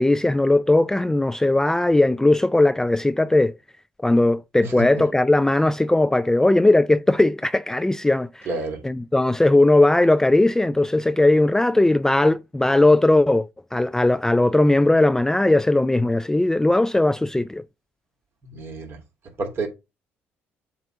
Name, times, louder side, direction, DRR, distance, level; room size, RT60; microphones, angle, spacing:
voice 1, 0.0-3.6 4.0-8.5 8.8-17.6, left 2 dB, 10° left, 0.3 m, -18 dB
voice 2, 4.6-5.0 8.5-8.8 18.5-19.0 19.4-19.7, right 3 dB, 50° right, 2.6 m, -29 dB
7.6 x 3.0 x 5.5 m
supercardioid pair, 65°, 5 cm